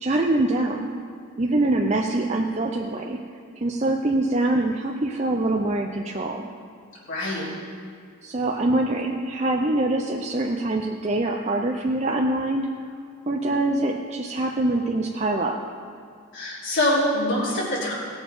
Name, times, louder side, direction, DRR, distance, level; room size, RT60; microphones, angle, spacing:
voice 1, 0.0-0.9 1.4-3.2 3.6-6.5 8.2-12.7 13.3-15.6, right 2 dB, 30° right, 1 dB, 0.6 m, -24 dB
voice 2, 7.1-7.4 16.3-17.9, left 1 dB, 60° left, -9 dB, 3.6 m, -24 dB
18.5 x 7.1 x 5.5 m, 2.2 s
head